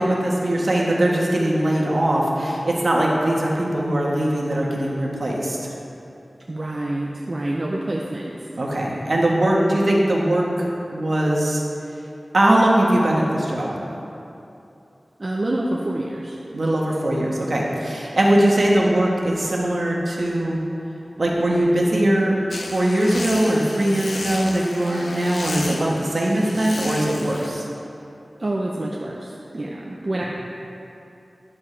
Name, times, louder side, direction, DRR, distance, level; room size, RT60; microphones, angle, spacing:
voice 1, 0.0-5.6 8.6-11.6 12.3-13.7 16.5-20.6 21.2-22.4 22.7-27.6, right 1 dB, 65° right, -3 dB, 1.4 m, -20 dB
voice 2, 6.5-8.5 15.2-16.4 28.4-30.2, right 1 dB, 50° right, -2 dB, 0.7 m, -27 dB
sound 1, 22.5-27.5, left 2 dB, 75° left, 0.7 m, -33 dB
11.5 x 7.2 x 3.3 m, 2.8 s
wide cardioid pair, 60°, 0 cm